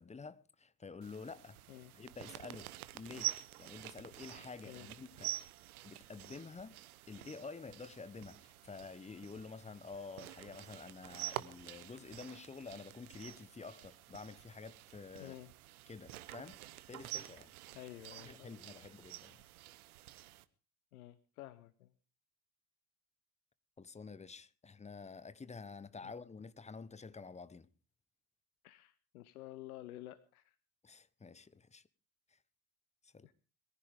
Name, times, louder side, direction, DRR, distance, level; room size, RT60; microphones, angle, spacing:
voice 1, 0.0-1.6 1.9-5.3 5.8-6.7 7.1-15.3 15.9-16.6 16.9-17.5 18.2-19.4 23.8-27.7 30.8-31.8 32.3-32.4 33.0-33.3, left 4 dB, 15° left, 0.9 m, -49 dB
sound 1, 1.0-20.4, right 14 dB, 70° right, 1.0 m, -48 dB
voice 2, 15.2-15.5 17.7-18.5 20.9-21.9 26.0-26.1 28.6-30.5 33.2-33.3, left 15 dB, 70° left, 0.9 m, -51 dB
22.0 x 15.0 x 3.5 m
figure-of-eight pair, 60°, 45 cm